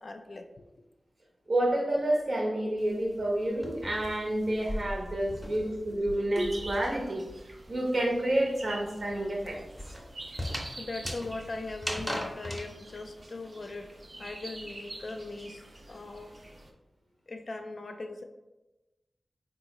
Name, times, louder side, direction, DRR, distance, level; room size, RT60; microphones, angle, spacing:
voice 1, 0.0-0.5 4.5-4.6 10.3-13.9 14.2-15.6 15.9-16.3 17.3-18.2, left 2 dB, 55° left, 5 dB, 0.3 m, -40 dB
voice 2, 1.5-7.2 7.7-9.6, right 1 dB, 60° right, -1 dB, 0.8 m, -29 dB
sound 1, 2.8-6.5 6.8-12.7, equal, 5° right, 0.6 m, -39 dB
sound 2, 6.4-16.7, right 2 dB, 45° right, 0.4 m, -46 dB
3.7 x 2.3 x 3.0 m, 1.0 s
wide cardioid pair, 65°, 0 cm